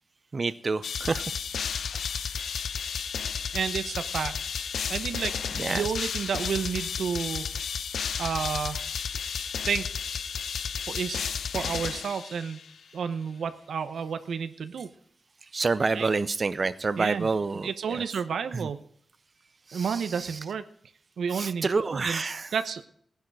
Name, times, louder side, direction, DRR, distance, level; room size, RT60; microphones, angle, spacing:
voice 1, 0.3-1.4 5.5-5.9 15.4-18.0 18.5-18.7 19.7-20.4 21.3-22.5, right 4 dB, 35° right, 14 dB, 0.6 m, -28 dB
sound 1, 0.8-12.7, left 7 dB, 75° left, 0.6 m, -32 dB
voice 2, 3.5-4.4 4.9-7.5 8.2-8.8 9.7-9.9 10.9-12.6 12.9-14.9 15.9-16.1 17.0-17.3 17.6-18.8 19.7-20.6 21.2-21.7 21.9-22.2 22.5-22.9, right 6 dB, 80° right, 10 dB, 0.9 m, -31 dB
17.5 x 10.5 x 4.8 m, 0.65 s
wide cardioid pair, 150°, 0 cm